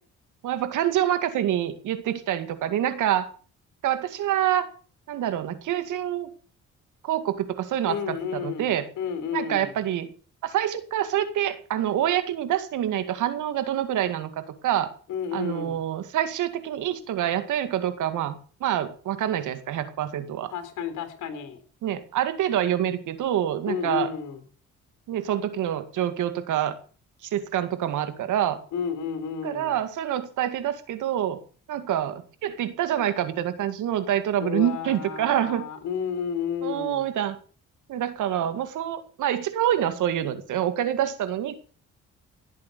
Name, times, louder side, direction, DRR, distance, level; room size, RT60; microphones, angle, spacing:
voice 1, 0.4-3.3 3.8-4.7 5.1-6.3 7.0-8.9 9.3-10.1 10.4-14.9 15.3-20.5 21.8-24.1 25.1-26.7 27.2-28.6 29.4-31.4 31.7-35.7 36.6-37.4 37.9-41.6, right 11 dB, 80° right, 11 dB, 2.2 m, -26 dB
voice 2, 7.9-9.7 15.1-15.8 20.5-21.6 23.7-24.4 28.7-29.8 34.4-37.0, left 7 dB, 80° left, 9 dB, 3.9 m, -31 dB
17.5 x 8.6 x 6.9 m, 0.40 s
cardioid pair, 90°, 30 cm